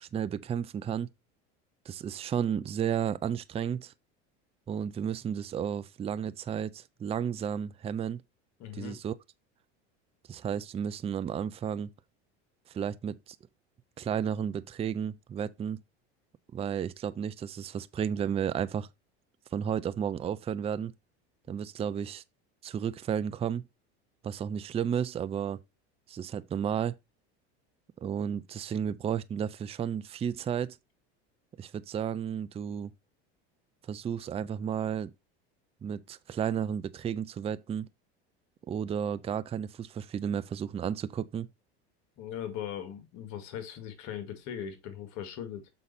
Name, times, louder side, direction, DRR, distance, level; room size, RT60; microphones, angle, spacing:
voice 1, 0.0-1.1 1.9-3.9 4.7-8.2 8.7-9.1 10.3-11.9 12.7-13.4 14.0-15.8 16.5-18.9 19.5-20.9 21.5-22.2 22.6-23.6 24.2-25.6 26.1-27.0 28.0-30.8 31.6-32.9 33.9-35.1 35.8-37.9 38.7-41.5, right 8 dB, 20° right, 0.4 m, -32 dB
voice 2, 8.6-9.0 42.2-45.7, left 9 dB, 60° left, 2.0 m, -39 dB
6.5 x 5.3 x 4.1 m
hypercardioid pair, 95°, 33 cm